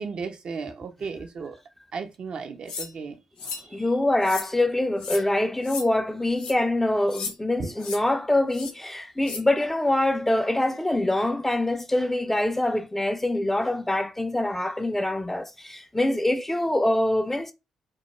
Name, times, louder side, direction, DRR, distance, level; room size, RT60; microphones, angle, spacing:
voice 1, 0.0-1.6 1.9-3.2 3.5-3.9 7.6-7.7, right 5 dB, 55° right, 0.5 m, -35 dB
sound 1, 2.7-2.9 3.4-3.7 4.2-4.5 5.0-5.2 5.6-5.9 6.4-6.5 7.1-7.3 7.8-8.0 8.5-8.7 9.2-9.4, left 5 dB, 75° left, 0.6 m, -34 dB
voice 2, 3.7-17.5, left 1 dB, 10° left, 0.4 m, -24 dB
2.2 x 2.0 x 3.0 m
hypercardioid pair, 40°, 2 cm